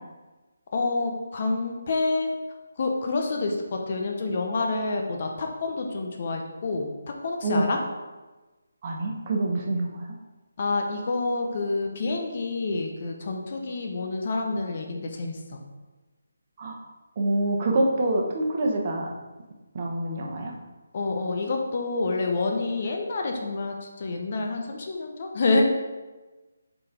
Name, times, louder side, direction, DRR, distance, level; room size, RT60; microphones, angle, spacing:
voice 1, 0.7-2.4 2.8-6.9 7.2-7.8 10.6-15.6 20.9-25.6, left 3 dB, 45° left, 2 dB, 0.9 m, -28 dB
voice 2, 8.8-9.9 16.6-16.8 17.2-19.1 19.7-20.5, right 2 dB, 35° right, 0 dB, 1.0 m, -26 dB
7.7 x 4.1 x 3.8 m, 1.2 s
figure-of-eight pair, 150°, 0 cm